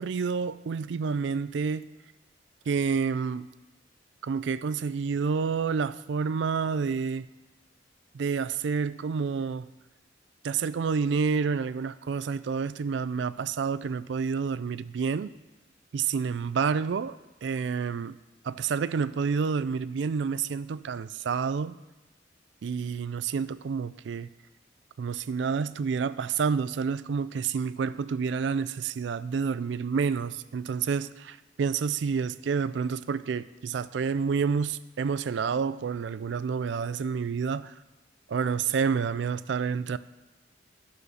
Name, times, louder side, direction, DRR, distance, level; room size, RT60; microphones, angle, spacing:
voice 1, 0.0-1.9 2.7-3.5 4.2-7.3 8.1-9.7 10.4-15.3 15.9-18.2 18.4-21.8 22.6-24.3 25.0-37.7 38.3-40.0, right 5 dB, 70° right, 16 dB, 0.4 m, -29 dB
12.5 x 4.9 x 6.4 m, 1.1 s
head